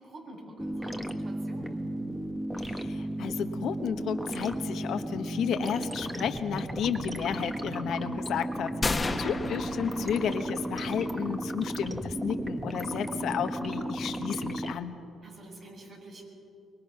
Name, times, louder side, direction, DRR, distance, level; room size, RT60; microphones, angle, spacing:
voice 1, 0.0-1.8 8.9-9.4 15.2-16.3, right 2 dB, 55° right, -1 dB, 6.9 m, -46 dB
sound 1, 0.6-14.8, right 1 dB, 10° right, 1.4 m, -34 dB
voice 2, 2.6-15.0, left 8 dB, 75° left, 8 dB, 1.2 m, -32 dB
sound 2, 8.8-10.7, left 3 dB, 25° left, 1.4 m, -32 dB
24.0 x 22.0 x 5.9 m, 2.6 s
cardioid pair, 90°, 0 cm